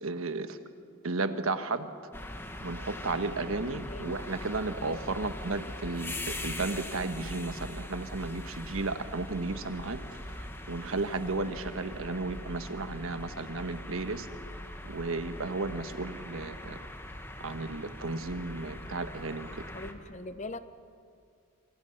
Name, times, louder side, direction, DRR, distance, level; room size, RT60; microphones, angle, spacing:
voice 1, 0.0-0.6 1.0-1.9 2.6-10.0 10.4-14.3 14.8-16.8 17.4-19.6, right 3 dB, 80° right, 9 dB, 1.3 m, -34 dB
sound 1, 2.1-19.9, left 1 dB, 10° left, 1.3 m, -41 dB
voice 2, 3.7-4.2 19.7-20.6, left 2 dB, 35° left, 12 dB, 0.7 m, -41 dB
27.5 x 25.0 x 5.8 m, 2.3 s
head